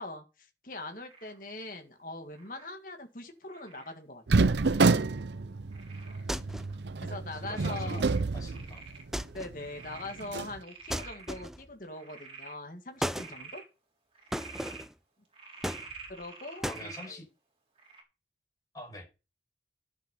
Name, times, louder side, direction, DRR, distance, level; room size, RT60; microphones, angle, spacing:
voice 1, 0.0-4.5 7.0-8.1 9.3-13.6 16.1-17.2, left 2 dB, 50° left, 2.0 m, -42 dB
Frog, 1.1-1.4 2.3-2.7 3.5-3.9 4.7-5.2 5.7-6.2 6.7-6.8 7.4-9.1 9.4-11.4 11.9-12.6 13.0-13.6 14.1-14.8 15.3-17.1 17.8-18.0, right 4 dB, 30° right, 4.0 m, -48 dB
sound 1, 4.3-9.2 9.5-9.6 10.2-10.6, right 3 dB, 80° right, 0.7 m, -28 dB
sound 2, 6.3-6.8 9.1-9.6 10.9-11.7 13.0-13.3 14.3-14.9 15.6-16.2 16.6-16.9, equal, ahead, 0.6 m, -35 dB
voice 2, 7.3-8.1 8.3-8.8 16.6-17.3 18.7-19.1, left 1 dB, 20° left, 6.8 m, -44 dB
12.0 x 7.4 x 5.6 m
head